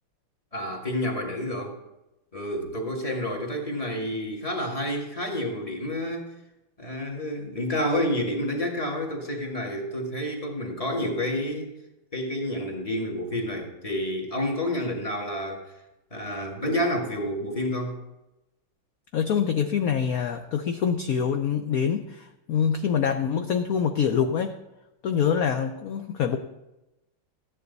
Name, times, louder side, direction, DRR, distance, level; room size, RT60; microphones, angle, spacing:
voice 1, 0.5-1.7 2.3-6.3 6.8-11.7 12.1-15.6 16.1-18.0, left 1 dB, 15° left, 0 dB, 1.9 m, -29 dB
voice 2, 19.1-24.6 25.0-26.4, left 7 dB, 75° left, 6 dB, 0.8 m, -25 dB
14.5 x 10.0 x 4.0 m, 0.94 s
omnidirectional pair, 2.3 m